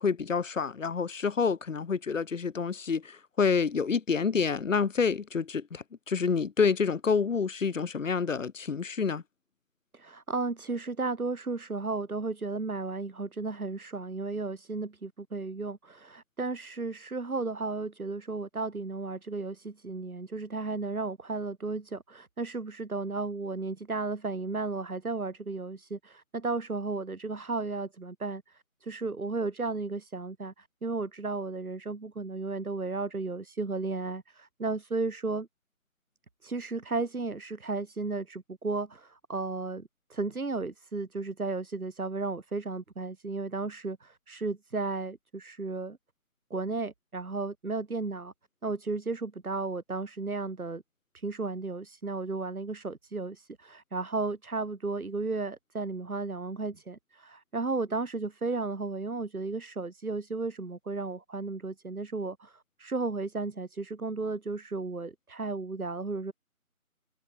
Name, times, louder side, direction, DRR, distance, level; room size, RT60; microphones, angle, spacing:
voice 1, 0.0-9.2, left 5 dB, 60° left, 0.7 m, -28 dB
voice 2, 9.9-35.5 36.4-46.0 46.5-48.3 48.6-50.8 51.1-66.3, right 3 dB, 80° right, 2.9 m, -34 dB
figure-of-eight pair, 170°, 43 cm